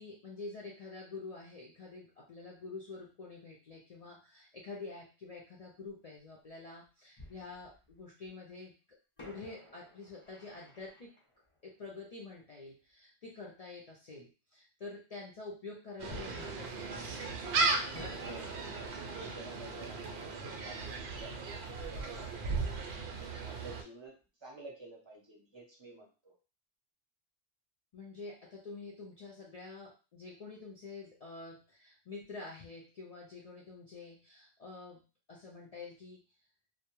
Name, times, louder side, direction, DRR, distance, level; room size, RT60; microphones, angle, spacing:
voice 1, 0.0-8.8 9.2-11.1 11.6-17.2 27.9-36.2, left 3 dB, 55° left, -3 dB, 0.4 m, -47 dB
Fireworks, 5.9-6.0 7.2-8.3 9.2-12.6 16.1-17.5 17.9-22.5 22.7-22.8 23.4-23.6, left 2 dB, 30° left, 0.9 m, -55 dB
Gull seagull, 16.0-23.8, right 3 dB, 70° right, 0.8 m, -36 dB
voice 2, 18.2-22.6 23.3-26.4, right 2 dB, 35° right, -1 dB, 0.5 m, -52 dB
2.2 x 2.1 x 2.9 m, 0.33 s
omnidirectional pair, 1.2 m